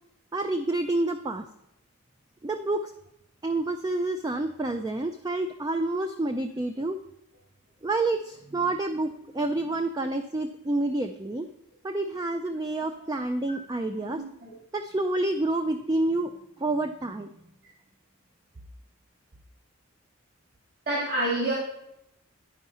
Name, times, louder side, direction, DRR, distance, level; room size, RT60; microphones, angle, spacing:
voice 1, 0.3-1.5 2.4-2.9 3.4-7.0 7.8-11.5 11.8-14.2 14.7-16.3 16.6-17.3, right 2 dB, 20° right, 6 dB, 0.3 m, -28 dB
voice 2, 14.0-14.5 20.9-21.5, right 1 dB, 45° right, -5 dB, 2.5 m, -28 dB
10.5 x 4.6 x 5.5 m, 0.80 s
head